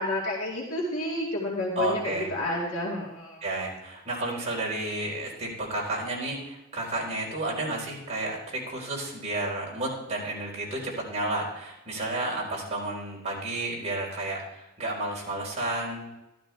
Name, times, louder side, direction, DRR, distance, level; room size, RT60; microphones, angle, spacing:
voice 1, 0.0-3.4, left 1 dB, 85° left, -4 dB, 2.4 m, -30 dB
voice 2, 1.8-2.3 3.4-14.4 14.8-16.0, right 2 dB, 35° right, -4 dB, 4.3 m, -31 dB
12.5 x 12.5 x 3.4 m, 0.91 s
head